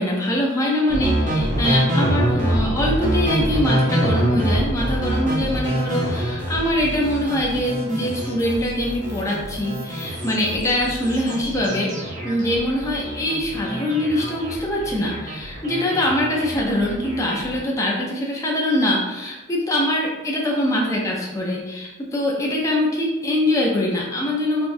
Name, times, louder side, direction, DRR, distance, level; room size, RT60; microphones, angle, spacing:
voice 1, 0.0-11.9 12.2-24.7, left 1 dB, 15° left, -3 dB, 0.5 m, -23 dB
sound 1, 0.9-17.6, equal, 35° right, 0.8 m, -25 dB
4.9 x 2.3 x 2.6 m, 1.1 s
head